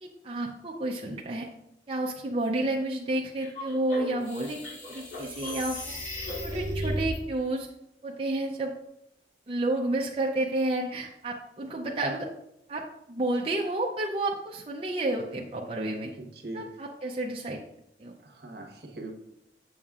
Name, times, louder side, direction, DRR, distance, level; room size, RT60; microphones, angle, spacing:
voice 1, 0.0-1.5 1.9-4.6 4.9-5.9 6.4-7.7 8.0-8.7 9.5-12.3 12.7-16.1 16.5-17.6 18.0-18.1, right 2 dB, 30° right, -1 dB, 0.5 m, -30 dB
sound 1, 3.4-7.2, equal, 85° left, 2.6 m, -35 dB
voice 2, 16.2-16.7 18.2-19.1, right 2 dB, 65° right, 2 dB, 1.2 m, -41 dB
7.2 x 7.1 x 2.4 m, 0.82 s
head